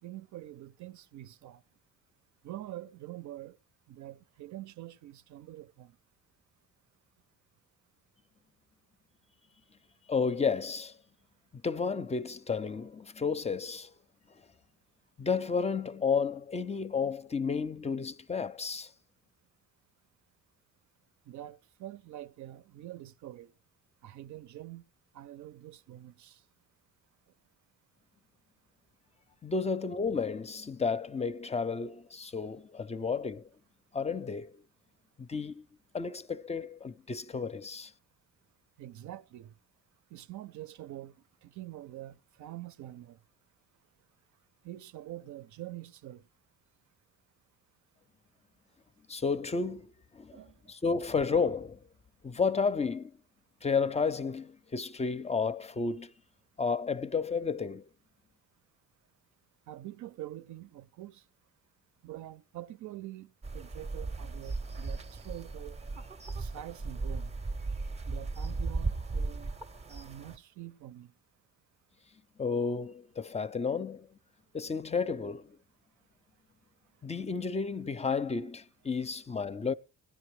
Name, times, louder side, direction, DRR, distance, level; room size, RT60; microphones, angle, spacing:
voice 1, 0.0-1.6 2.4-3.6 3.9-5.9 21.3-23.5 24.0-24.8 25.1-26.4 38.8-39.5 40.1-41.2 41.4-43.2 44.6-46.2 50.3-50.7 59.7-61.2 62.0-65.8 66.4-67.3 68.0-69.5 69.9-71.1, right 14 dB, 70° right, 0.6 m, -45 dB
voice 2, 10.1-11.0 11.5-13.9 15.2-18.9 29.4-33.5 33.9-34.6 35.2-35.7 35.9-37.9 49.1-50.4 50.7-51.8 52.2-53.1 53.6-56.1 56.6-57.9 72.4-74.2 74.5-75.6 77.0-79.7, left 5 dB, 20° left, 0.5 m, -32 dB
sound 1, 63.4-70.4, right 3 dB, 20° right, 0.6 m, -36 dB
17.5 x 10.5 x 3.2 m
cardioid pair, 90°, 30 cm